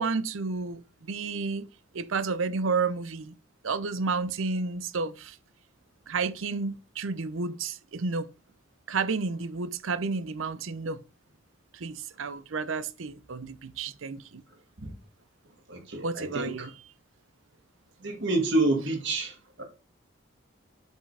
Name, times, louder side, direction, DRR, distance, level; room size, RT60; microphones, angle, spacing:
voice 1, 0.0-1.7 1.9-3.3 3.6-5.4 6.1-8.3 8.9-11.0 11.7-14.4 16.0-16.7, right 4 dB, 80° right, 0.6 m, -31 dB
voice 2, 15.7-16.7 18.0-19.6, right 2 dB, 60° right, 2.0 m, -28 dB
7.3 x 5.7 x 3.4 m
head